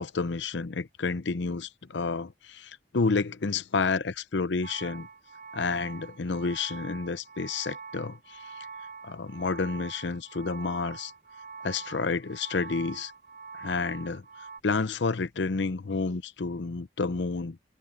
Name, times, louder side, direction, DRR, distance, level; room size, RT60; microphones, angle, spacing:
voice 1, 0.0-5.1 5.5-8.5 9.0-11.1 11.6-13.1 13.5-14.2 14.6-17.6, left 4 dB, 75° left, 0.7 m, -30 dB
sound 1, 4.6-14.6, right 5 dB, 50° right, 7.5 m, -44 dB
open air
head